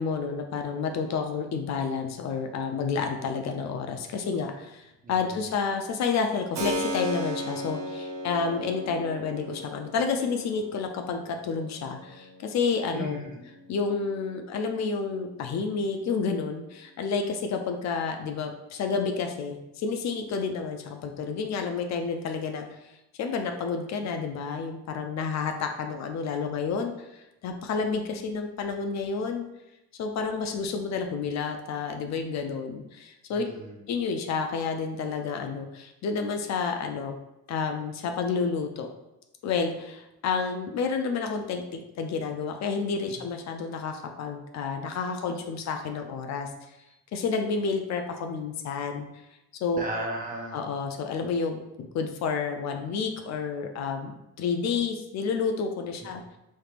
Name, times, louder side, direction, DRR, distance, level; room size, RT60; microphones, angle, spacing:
voice 1, 0.0-13.2 13.7-29.4 30.0-33.4 33.9-37.2 37.5-38.9 39.4-46.8 47.1-49.1 49.6-49.9 50.5-54.1 54.4-56.2, left 5 dB, 65° left, 4 dB, 0.5 m, -30 dB
voice 2, 5.0-5.4 12.9-13.4 33.3-33.8 43.1-43.2 49.8-50.6, right 1 dB, 30° right, -1 dB, 0.9 m, -36 dB
Keyboard (musical), 6.5-15.2, equal, 65° right, 0.7 m, -37 dB
3.3 x 3.1 x 2.4 m, 0.93 s
cardioid pair, 90°, 30 cm